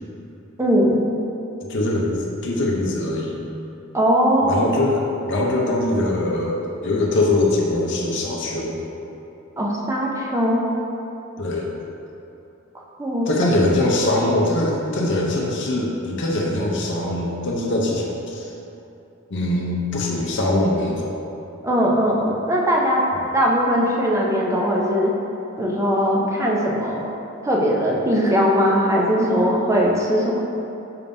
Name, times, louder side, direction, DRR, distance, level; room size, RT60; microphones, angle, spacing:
voice 1, 0.6-1.0 3.9-4.6 9.6-10.6 13.0-13.5 21.6-23.0 23.3-25.1 25.6-27.1 27.4-30.4, equal, 15° right, -3 dB, 0.5 m, -20 dB
voice 2, 1.7-3.5 4.4-8.8 11.4-11.7 13.3-18.5 19.3-21.2, left 1 dB, 60° left, -2 dB, 0.7 m, -22 dB
5.7 x 3.5 x 2.6 m, 2.9 s
head